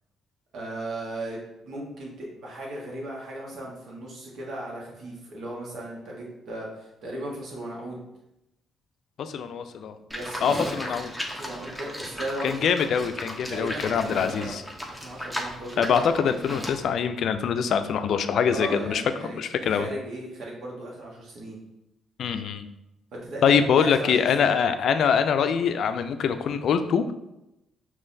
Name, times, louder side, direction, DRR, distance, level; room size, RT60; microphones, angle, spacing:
voice 1, 0.5-8.0 10.0-10.6 11.3-12.7 13.5-14.6 15.0-16.3 18.5-19.4 19.7-21.6 23.1-24.5, right 1 dB, 70° right, -3 dB, 1.3 m, -36 dB
voice 2, 9.2-10.0 10.4-11.1 12.4-14.6 15.8-19.0 19.3-19.9 22.2-22.7 23.4-27.1, left 7 dB, 65° left, 9 dB, 0.3 m, -24 dB
Livestock farm animals working animals, 10.1-16.8, equal, 5° right, 0.8 m, -36 dB
5.6 x 3.0 x 2.6 m, 0.89 s
cardioid pair, 90°, 0 cm